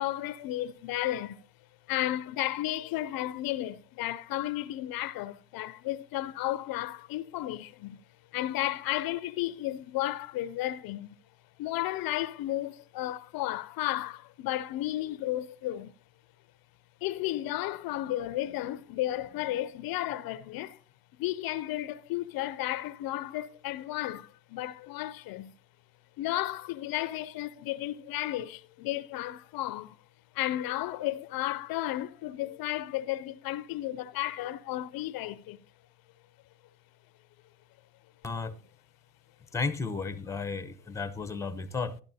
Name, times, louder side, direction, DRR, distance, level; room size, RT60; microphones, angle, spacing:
voice 1, 0.0-1.4 1.9-8.0 8.3-11.2 11.6-15.9 17.0-20.8 21.2-25.5 26.2-30.0 30.3-35.6, left 15 dB, 60° left, 0.5 m, -33 dB
voice 2, 38.2-38.5 39.5-42.0, left 4 dB, 5° left, 0.7 m, -33 dB
12.0 x 11.5 x 2.7 m
supercardioid pair, 85°, 40 cm